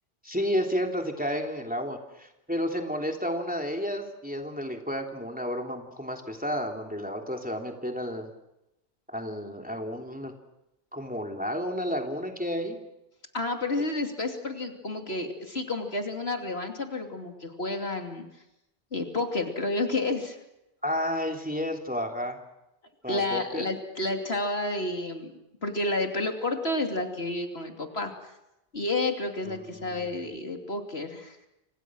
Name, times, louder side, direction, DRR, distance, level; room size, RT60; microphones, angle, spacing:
voice 1, 0.2-8.3 9.1-10.3 10.9-12.8 20.8-22.4 23.0-23.6 29.5-30.1, equal, 5° right, 3 dB, 3.1 m, -31 dB
voice 2, 13.3-18.3 18.9-20.4 23.1-25.3 25.6-28.1 28.7-31.4, left 2 dB, 65° left, 4 dB, 3.1 m, -30 dB
29.5 x 26.5 x 6.3 m, 0.89 s
omnidirectional pair, 1.1 m